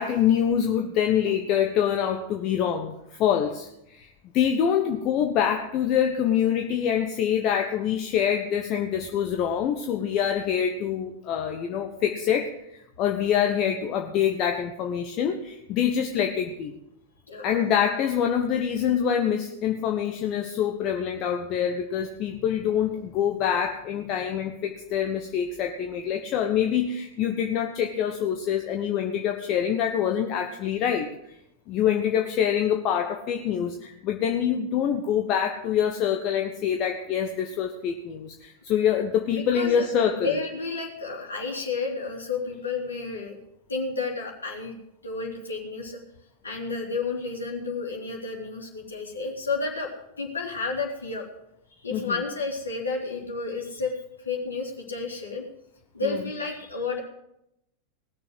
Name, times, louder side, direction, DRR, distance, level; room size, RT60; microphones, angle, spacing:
voice 1, 0.0-4.1 4.3-16.7 17.4-31.1 31.7-40.4 51.9-52.1 56.0-56.2, left 9 dB, 40° left, 4 dB, 1.1 m, -25 dB
voice 2, 17.3-17.7 39.3-43.4 43.7-44.8 45.0-46.0 46.4-49.9 50.2-51.3 51.8-53.9 54.2-55.5 55.9-57.0, left 4 dB, 75° left, -1 dB, 2.9 m, -31 dB
18.5 x 6.9 x 7.9 m, 0.83 s
figure-of-eight pair, 90°, 0 cm